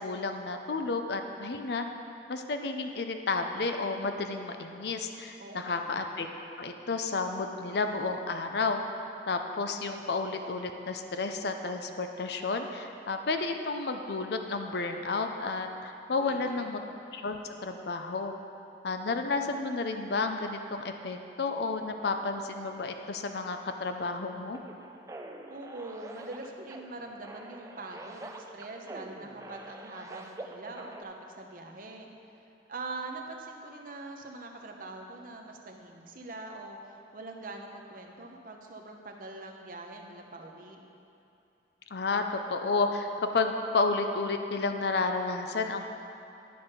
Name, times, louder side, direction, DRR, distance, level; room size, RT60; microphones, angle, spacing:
voice 1, 0.0-1.9 2.3-6.3 6.6-8.8 9.3-16.8 17.1-18.3 18.8-24.6 41.9-43.1 43.3-45.9, left 3 dB, 60° left, 6 dB, 0.5 m, -31 dB
voice 2, 5.4-5.9 16.2-16.7 25.5-32.1 32.7-40.8, right 2 dB, 45° right, 2 dB, 0.8 m, -43 dB
sound 1, 24.5-31.0, right 2 dB, 15° right, 0.4 m, -46 dB
11.0 x 5.3 x 5.3 m, 2.8 s
head